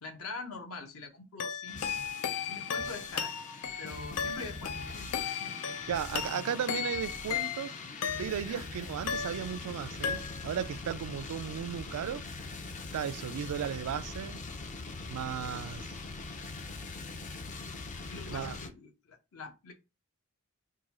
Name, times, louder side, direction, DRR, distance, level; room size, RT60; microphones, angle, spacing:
voice 1, 0.0-2.1 2.4-3.3 3.8-5.8 6.3-6.9 8.4-8.6 15.3-15.9 18.0-19.7, left 3 dB, 70° left, 0.9 m, -45 dB
sound 1, 1.4-8.6 9.1-9.8 10.0-10.7, left 7 dB, 90° left, 0.4 m, -36 dB
sound 2, 1.7-18.7, left 3 dB, 35° left, 0.4 m, -42 dB
voice 2, 5.9-7.7 8.2-12.2 12.9-14.4 15.1-15.8 18.3-18.6, right 8 dB, 80° right, 0.3 m, -35 dB
3.7 x 2.3 x 2.9 m
head